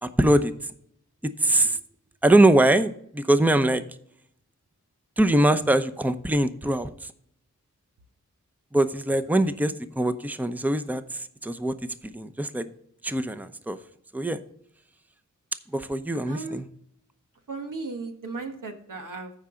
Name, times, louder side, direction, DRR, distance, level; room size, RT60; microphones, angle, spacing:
voice 1, 0.0-0.7 1.2-1.8 2.2-3.8 5.2-7.1 8.7-11.7 12.0-12.7 13.0-13.8 14.1-14.4 15.7-16.7, right 1 dB, 5° right, 11 dB, 0.7 m, -23 dB
voice 2, 16.3-16.6 17.5-19.3, right 3 dB, 85° right, 4 dB, 1.5 m, -35 dB
14.5 x 4.9 x 3.8 m, 0.68 s
cardioid pair, 45°, 31 cm